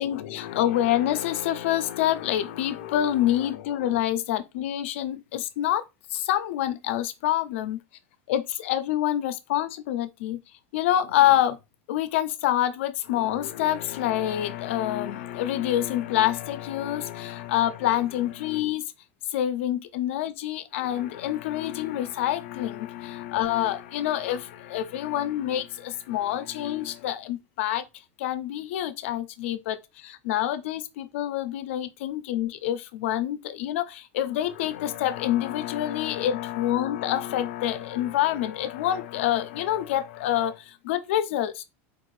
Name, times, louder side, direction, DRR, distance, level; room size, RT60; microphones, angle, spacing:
voice 1, 0.0-5.8 6.1-7.8 8.3-10.4 10.7-11.6 11.9-18.8 19.3-27.8 28.2-41.6, left 12 dB, 75° left, 0.5 m, -27 dB
4.4 x 2.6 x 3.1 m
supercardioid pair, 160°, 7 cm